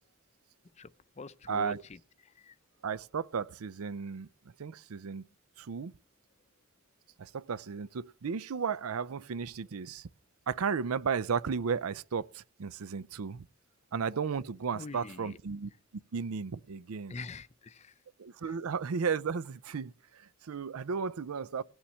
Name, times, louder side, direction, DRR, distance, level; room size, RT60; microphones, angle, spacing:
voice 1, 0.8-2.6 14.7-15.4 17.1-17.9 18.4-18.6, left 3 dB, 30° left, 0.5 m, -45 dB
voice 2, 1.5-1.8 2.8-4.3 4.6-5.2 5.6-5.9 7.2-10.1 10.5-13.5 13.9-15.7 16.1-17.1 18.2-21.6, right 6 dB, 85° right, 0.5 m, -34 dB
18.0 x 7.2 x 6.2 m
head